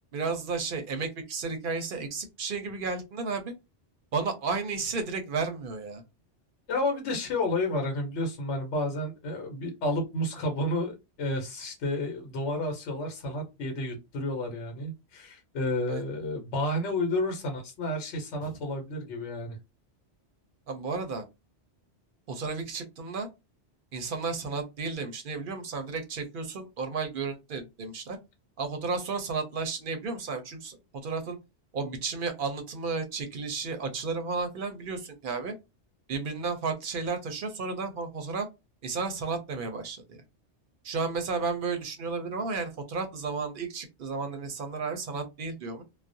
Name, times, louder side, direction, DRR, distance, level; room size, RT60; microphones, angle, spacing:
voice 1, 0.1-3.5 4.1-6.0 15.9-16.1 20.7-21.2 22.3-23.3 23.9-28.2 28.6-31.4 31.7-35.5 36.1-38.5 38.8-40.2 40.8-45.8, right 4 dB, 60° right, 7 dB, 0.6 m, -33 dB
voice 2, 6.7-19.6, left 1 dB, 75° left, 3 dB, 1.0 m, -31 dB
2.3 x 2.0 x 2.5 m, 0.24 s
omnidirectional pair, 1.2 m